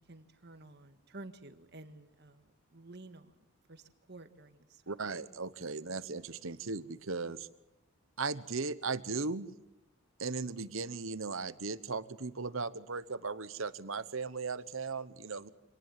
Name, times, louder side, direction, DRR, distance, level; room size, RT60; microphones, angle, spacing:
voice 1, 0.0-3.4 3.7-4.8, right 2 dB, 50° right, 10 dB, 1.7 m, -52 dB
voice 2, 4.9-7.5 8.2-9.5 10.2-15.5, right 4 dB, 65° right, 15 dB, 1.1 m, -37 dB
26.5 x 19.0 x 7.6 m, 0.87 s
head